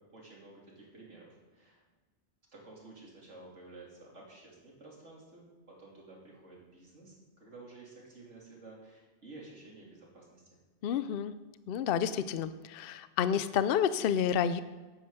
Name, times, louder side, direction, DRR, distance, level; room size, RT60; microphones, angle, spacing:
voice 1, 0.1-1.8 2.5-10.4, right 3 dB, 90° right, -3 dB, 3.3 m, -52 dB
voice 2, 10.8-11.3 11.7-14.6, left 8 dB, 65° left, 13 dB, 0.7 m, -29 dB
11.0 x 8.9 x 5.6 m, 1.3 s
omnidirectional pair, 1.2 m